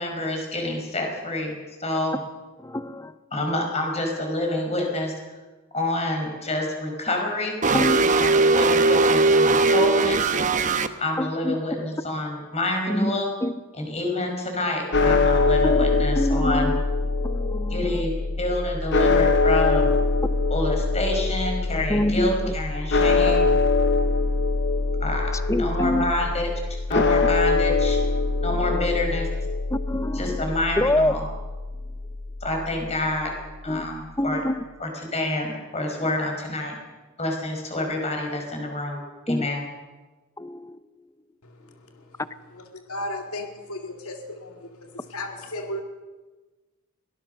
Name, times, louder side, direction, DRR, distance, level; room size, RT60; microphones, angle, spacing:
voice 1, 0.0-2.2 3.3-5.1 5.7-7.6 8.2-10.4 11.0-13.3 13.8-16.7 17.7-19.9 20.5-23.5 25.0-25.3 25.6-28.0 28.4-29.3 30.1-31.2 32.4-33.3 33.6-34.4 34.8-36.8 37.2-39.0 39.3-39.6, left 1 dB, 30° left, 2 dB, 5.1 m, -28 dB
voice 2, 2.6-3.2 7.7-8.5 11.2-11.6 12.9-14.0 15.6-16.8 17.2-18.1 21.9-22.5 25.5-26.2 26.9-27.0 28.5-28.7 29.7-30.5 30.8-31.1 33.7-33.9 34.2-34.6 36.0-36.1 39.3-39.5 40.4-40.8, left 1 dB, 15° left, 14 dB, 0.6 m, -26 dB
sound 1, 7.6-10.9, right 3 dB, 35° right, 1.0 m, -19 dB
sound 2, 14.9-33.2, left 3 dB, 50° left, 0.8 m, -23 dB
voice 3, 41.4-42.2 42.5-45.8, left 1 dB, 85° left, 4 dB, 2.0 m, -35 dB
22.5 x 18.5 x 6.6 m, 1.3 s
head